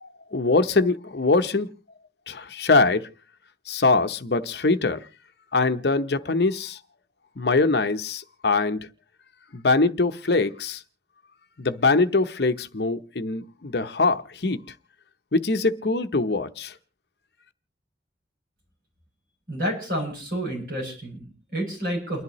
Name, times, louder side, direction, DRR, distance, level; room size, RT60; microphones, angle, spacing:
voice 1, 0.0-1.7 2.3-3.1 3.7-5.0 5.5-6.8 7.4-8.8 9.5-10.8 11.6-14.6 15.3-16.7, left 3 dB, 60° left, 0.8 m, -23 dB
voice 2, 19.5-22.2, right 1 dB, 50° right, 7.9 m, -30 dB
29.5 x 11.0 x 3.1 m
head